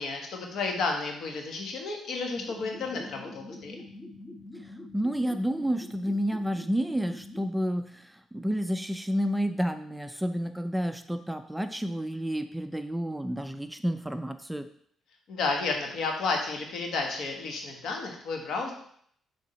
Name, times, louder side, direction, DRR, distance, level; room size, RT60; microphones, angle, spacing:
voice 1, 0.0-3.8 15.3-18.7, left 3 dB, 70° left, 2 dB, 1.3 m, -32 dB
sound 1, 2.4-7.5, left 2 dB, 15° left, 1.0 m, -45 dB
voice 2, 4.9-14.7, equal, 5° right, 9 dB, 0.4 m, -30 dB
6.6 x 3.5 x 4.3 m, 0.64 s
cardioid pair, 90°, 0 cm